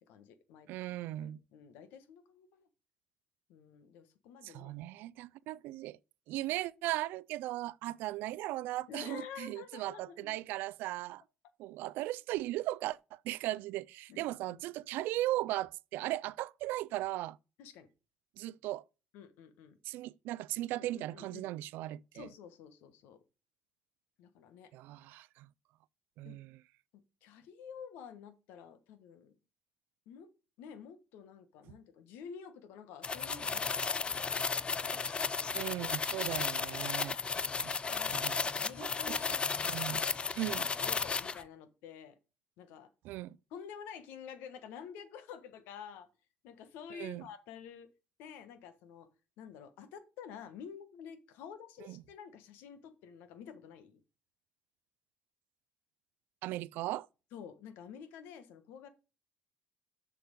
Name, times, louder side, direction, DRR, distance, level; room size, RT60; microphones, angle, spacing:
voice 1, 0.0-0.7 1.2-2.7 3.5-4.7 8.9-10.3 14.1-14.6 17.6-17.9 19.1-19.8 20.8-21.4 22.1-23.2 24.2-24.7 26.2-26.4 26.9-29.3 30.1-30.3 30.6-35.5 37.3-39.3 39.8-40.2 40.8-42.2 42.6-42.9 43.5-46.1 46.4-47.9 48.2-49.1 49.4-54.0 57.3-58.9, left 7 dB, 85° left, 1.3 m, -50 dB
voice 2, 0.7-1.4 4.4-6.0 6.3-11.2 11.6-17.4 18.4-18.8 19.8-22.3 24.7-25.5 26.2-26.6 35.5-37.2 37.6-37.8 38.1-38.5 38.8-39.4 39.7-40.0 40.4-40.7 43.0-43.4 46.9-47.3 51.8-52.0 56.4-57.1, right 16 dB, 80° right, 0.3 m, -37 dB
sound 1, 33.0-41.4, left 5 dB, 30° left, 0.6 m, -34 dB
6.8 x 6.0 x 5.2 m
supercardioid pair, 85°, 3 cm